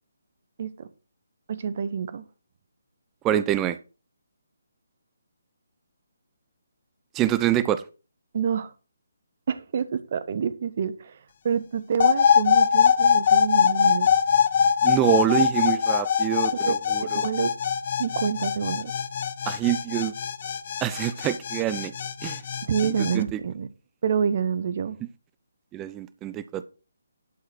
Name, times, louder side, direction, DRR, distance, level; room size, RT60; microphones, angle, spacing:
voice 1, 1.5-2.2 8.3-8.7 9.5-11.2 11.4-14.1 16.5-16.8 17.1-17.5 18.0-18.9 22.6-23.7 24.0-25.0, right 7 dB, 40° right, 0.9 m, -27 dB
voice 2, 3.2-3.8 7.1-7.8 14.8-17.3 19.5-20.1 20.8-21.9 22.2-22.4 22.8-23.4 25.7-26.6, right 12 dB, 15° right, 0.5 m, -26 dB
sound 1, 12.0-23.2, left 7 dB, 40° left, 0.7 m, -22 dB
11.0 x 4.8 x 6.1 m
figure-of-eight pair, 140°, 0 cm